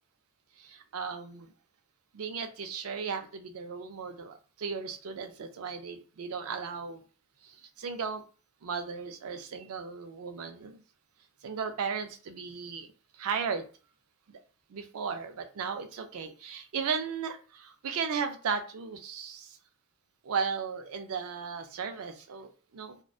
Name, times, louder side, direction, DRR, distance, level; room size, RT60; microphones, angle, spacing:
voice 1, 0.6-1.5 2.1-7.0 7.4-8.2 8.6-10.8 11.4-12.9 13.1-13.7 14.3-14.4 14.7-19.6 20.2-23.0, right 6 dB, 65° right, 7 dB, 0.4 m, -36 dB
2.5 x 2.1 x 2.3 m, 0.37 s
head